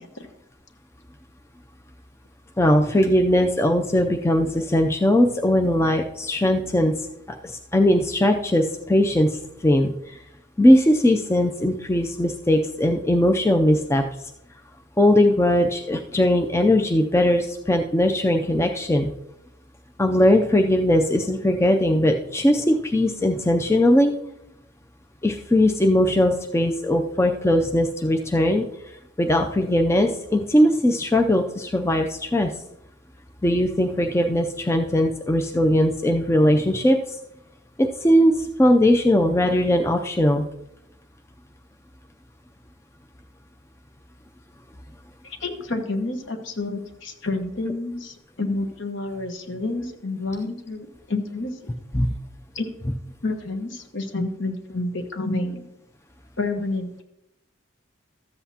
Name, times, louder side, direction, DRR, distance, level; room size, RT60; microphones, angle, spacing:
voice 1, 2.6-7.0 7.4-10.2 10.6-14.0 15.0-19.1 20.0-24.1 25.2-28.7 29.2-32.5 33.4-37.2 37.8-40.5 51.9-52.1, left 1 dB, 15° left, 4 dB, 0.4 m, -20 dB
voice 2, 45.2-51.5 52.5-52.7 53.2-55.6 56.4-57.0, left 2 dB, 60° left, 6 dB, 1.2 m, -29 dB
13.5 x 7.9 x 2.8 m, 0.83 s
head